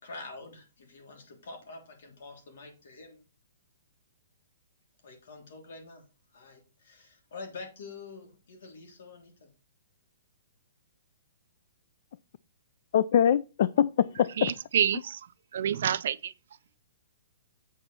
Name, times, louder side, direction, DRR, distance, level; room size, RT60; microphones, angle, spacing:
voice 1, 0.0-3.2 5.0-6.0 6.3-9.5, left 3 dB, 60° left, 3.3 m, -46 dB
voice 2, 12.9-14.5, left 9 dB, 40° left, 0.3 m, -23 dB
voice 3, 14.4-16.3, right 9 dB, 55° right, 0.5 m, -29 dB
8.4 x 5.3 x 4.4 m
hypercardioid pair, 175°, 0 cm